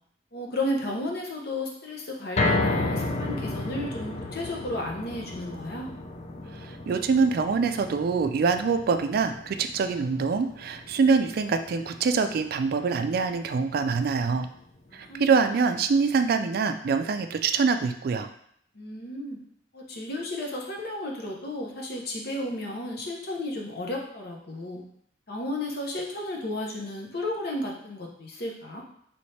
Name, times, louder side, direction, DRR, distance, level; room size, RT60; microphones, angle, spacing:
voice 1, 0.3-5.9 14.9-15.3 18.7-19.4 19.7-24.8 25.3-28.8, left 1 dB, 60° left, 0 dB, 0.9 m, -33 dB
sound 1, 2.4-14.6 15.0-15.1 15.6-15.7, left 2 dB, 40° left, 0.4 m, -33 dB
voice 2, 6.5-14.5 14.9-18.3, right 5 dB, 55° right, 8 dB, 0.3 m, -25 dB
4.1 x 3.1 x 3.2 m, 0.68 s
head